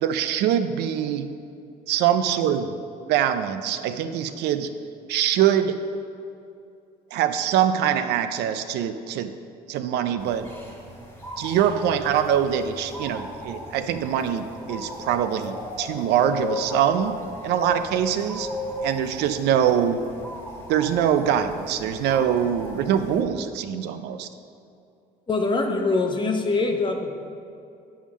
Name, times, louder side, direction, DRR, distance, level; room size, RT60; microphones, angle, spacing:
voice 1, 0.0-1.3 1.9-2.7 3.1-4.7 5.1-5.8 7.1-9.3 9.7-10.5 11.4-17.2 17.4-18.5 18.8-20.0 20.7-24.3, right 9 dB, 85° right, 10 dB, 0.5 m, -23 dB
sound 1, 10.2-23.2, equal, 15° left, 1.5 m, -36 dB
voice 2, 25.3-27.1, left 3 dB, 30° left, 3 dB, 0.8 m, -23 dB
8.5 x 3.6 x 6.1 m, 2.5 s
cardioid pair, 110°, 17 cm